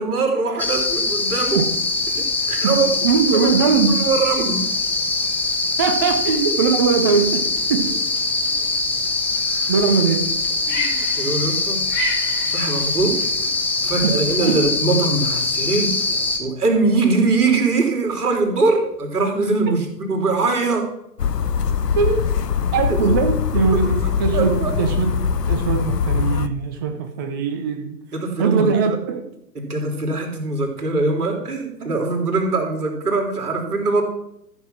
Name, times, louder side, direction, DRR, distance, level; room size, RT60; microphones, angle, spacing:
voice 1, 0.0-1.6 2.2-2.9 3.3-4.7 10.7-11.8 12.5-13.5 13.8-16.1 16.4-20.9 22.9-23.1 23.8-24.8 28.1-28.7 29.6-34.0, right 3 dB, 65° right, 2 dB, 3.8 m, -22 dB
sound 1, 0.6-16.4, left 3 dB, 5° left, 0.9 m, -23 dB
voice 2, 2.6-4.0 5.8-8.0 9.7-10.3 14.0-14.6 22.0-22.2 22.7-28.0 28.4-29.2, right 5 dB, 15° right, 5 dB, 0.5 m, -21 dB
sound 2, 6.5-20.8, left 2 dB, 25° left, 4.4 m, -34 dB
sound 3, 21.2-26.5, left 7 dB, 75° left, 0.9 m, -22 dB
14.0 x 7.1 x 6.0 m, 0.77 s
figure-of-eight pair, 115°, 49 cm